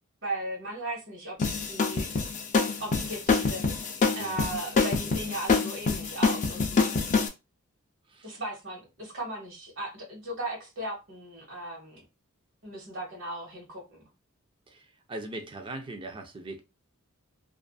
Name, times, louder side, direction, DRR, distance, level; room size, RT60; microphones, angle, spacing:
voice 1, 0.2-1.4 1.6-2.4 2.8-6.8 8.2-12.0 12.6-14.1, right 1 dB, 60° right, 1.2 m, -37 dB
sound 1, 1.4-7.3, left 4 dB, 35° left, 0.4 m, -26 dB
voice 2, 4.2-4.5 8.1-8.4 14.7-16.6, right 2 dB, 25° right, 0.4 m, -40 dB
2.4 x 2.4 x 2.3 m
head